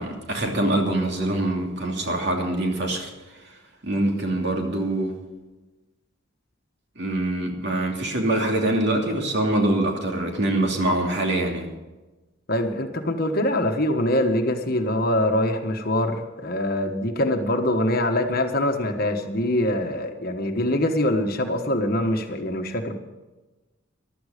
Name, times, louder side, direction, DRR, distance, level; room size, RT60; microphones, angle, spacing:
voice 1, 0.0-3.1 3.8-5.2 7.0-11.7, right 1 dB, 55° right, 1 dB, 2.8 m, -24 dB
voice 2, 12.5-23.0, left 1 dB, 45° left, 5 dB, 1.3 m, -24 dB
15.0 x 12.5 x 5.1 m, 1.1 s
head